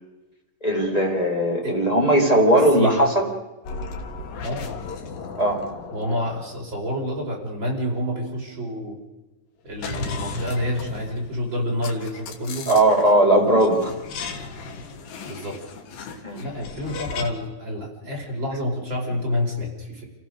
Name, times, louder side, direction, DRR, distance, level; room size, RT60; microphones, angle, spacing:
voice 1, 0.6-3.3 5.4-5.6 12.7-13.9 16.2-16.4, right 1 dB, 10° left, 0 dB, 3.6 m, -18 dB
sound 1, 3.6-7.7 9.7-13.2 13.6-17.3, left 4 dB, 60° left, 3.4 m, -35 dB
voice 2, 5.9-9.0 9.6-12.7 13.4-13.5 15.2-15.6 16.4-20.1, left 1 dB, 25° right, -1 dB, 5.4 m, -28 dB
28.5 x 16.5 x 6.6 m, 1.0 s
omnidirectional pair, 4.9 m